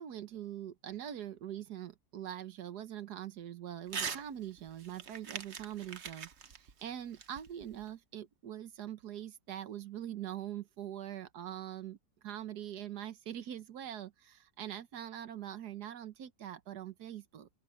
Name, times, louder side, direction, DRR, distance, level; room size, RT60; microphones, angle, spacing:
voice 1, 0.0-12.0 12.2-17.5, right 11 dB, 90° right, 1.6 m, -43 dB
Crumpling crinkling / Tearing, 3.9-4.2 4.6-7.9, right 6 dB, 50° right, 1.3 m, -42 dB
open air
omnidirectional pair, 1.7 m